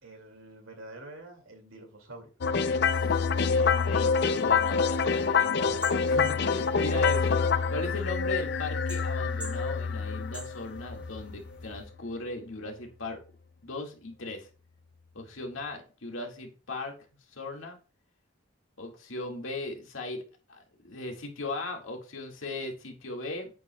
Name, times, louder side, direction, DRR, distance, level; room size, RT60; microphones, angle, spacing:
voice 1, 0.0-2.3, right 2 dB, 75° right, 4 dB, 2.3 m, -47 dB
sound 1, 2.4-11.6, left 5 dB, 50° left, 0.5 m, -26 dB
voice 2, 2.8-3.3 3.6-7.4 7.7-13.2 13.6-14.5 15.1-17.0 17.3-17.8 18.8-20.2 20.5-23.5, left 2 dB, 70° left, 2 dB, 2.0 m, -38 dB
sound 2, 2.9-11.9, equal, 5° right, 2.0 m, -50 dB
8.9 x 8.4 x 2.3 m, 0.36 s
head